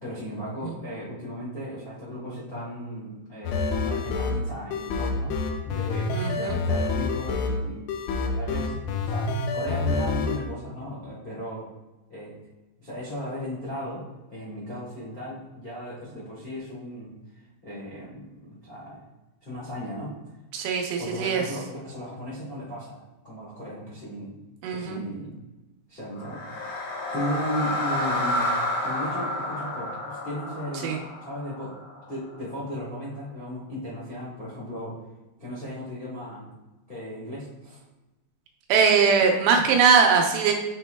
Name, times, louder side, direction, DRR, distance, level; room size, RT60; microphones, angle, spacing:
voice 1, 0.0-7.8 8.2-11.7 12.1-12.4 12.8-17.1 17.6-19.0 19.4-20.2 21.0-23.0 23.2-24.4 24.7-25.4 25.9-26.8 27.1-28.6 28.8-30.9 31.2-31.7 32.1-35.0 35.4-36.5 36.9-37.8, equal, 70° left, -8 dB, 0.5 m, -36 dB
sound 1, 3.5-10.4, left 3 dB, 85° left, 2.8 m, -27 dB
voice 2, 6.1-6.6 20.5-21.4 24.6-25.0 30.8-31.0 38.7-40.5, right 6 dB, 90° right, 2 dB, 3.1 m, -21 dB
sound 2, 26.1-32.3, left 1 dB, 50° left, 2.3 m, -30 dB
8.2 x 6.0 x 2.3 m, 1.1 s
omnidirectional pair, 4.8 m